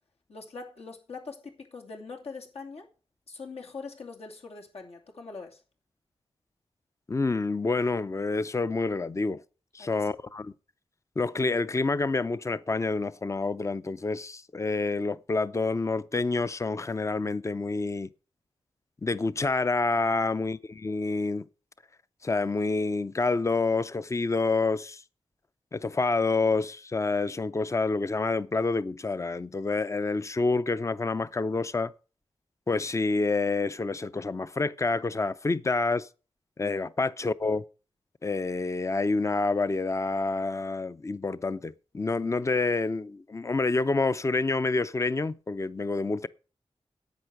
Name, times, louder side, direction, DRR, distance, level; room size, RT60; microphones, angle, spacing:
voice 1, 0.3-2.9 3.3-5.6 9.8-10.1, left 4 dB, 80° left, 2.7 m, -43 dB
voice 2, 7.1-9.4 9.7-10.5 11.2-18.1 19.0-21.4 22.2-25.0 25.7-31.9 32.7-36.1 36.6-37.6 38.2-46.3, left 3 dB, 30° left, 0.6 m, -28 dB
10.5 x 8.8 x 6.6 m
wide cardioid pair, 90°, 10 cm